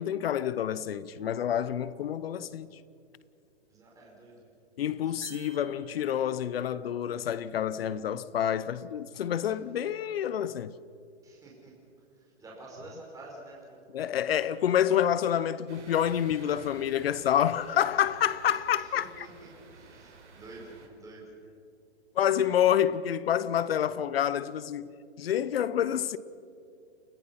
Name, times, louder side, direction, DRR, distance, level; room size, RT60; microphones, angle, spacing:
voice 1, 0.0-2.7 4.8-10.7 13.9-19.3 22.1-26.2, left 10 dB, 60° left, 0.9 m, -28 dB
voice 2, 3.7-4.4 4.9-5.0 11.2-11.7 12.4-13.8 18.9-21.2, right 2 dB, 10° right, 5.0 m, -48 dB
sound 1, 5.2-6.4, right 7 dB, 65° right, 4.3 m, -50 dB
sound 2, 15.7-20.9, right 4 dB, 80° right, 4.2 m, -52 dB
30.0 x 15.5 x 5.8 m
hypercardioid pair, 150°, 34 cm